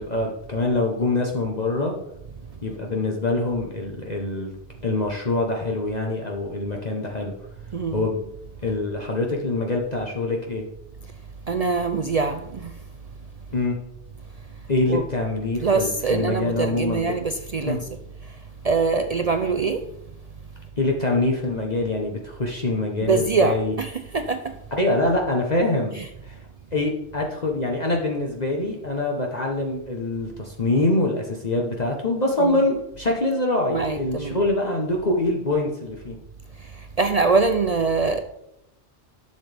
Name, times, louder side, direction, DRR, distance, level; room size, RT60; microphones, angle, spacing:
voice 1, 0.0-1.9 2.6-4.5 4.8-7.3 7.9-8.3 8.6-10.6 13.5-13.8 14.7-17.1 17.6-17.8 20.8-23.7 24.7-25.9 26.2-26.4 26.7-36.2, left 2 dB, 40° left, 1.1 m, -24 dB
voice 2, 7.7-8.0 11.5-12.7 14.9-15.0 15.6-17.8 18.6-19.8 23.0-24.5 32.4-32.6 33.7-34.4 37.0-38.2, right 4 dB, 50° right, 0.4 m, -23 dB
11.5 x 6.7 x 3.4 m
omnidirectional pair, 1.2 m